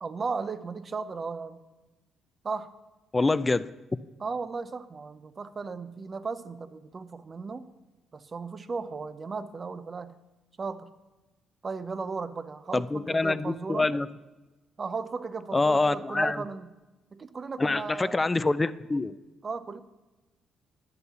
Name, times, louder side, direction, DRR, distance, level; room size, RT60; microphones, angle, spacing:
voice 1, 0.0-1.6 2.4-2.7 4.2-7.7 8.1-10.2 10.6-10.9 11.6-13.9 14.8-16.7 17.1-18.3 19.4-19.8, right 4 dB, 35° right, 0.6 m, -36 dB
voice 2, 3.1-3.7 12.7-14.1 15.5-16.4 17.6-19.2, left 3 dB, 20° left, 0.4 m, -25 dB
11.0 x 6.9 x 6.8 m
cardioid pair, 90°, 0 cm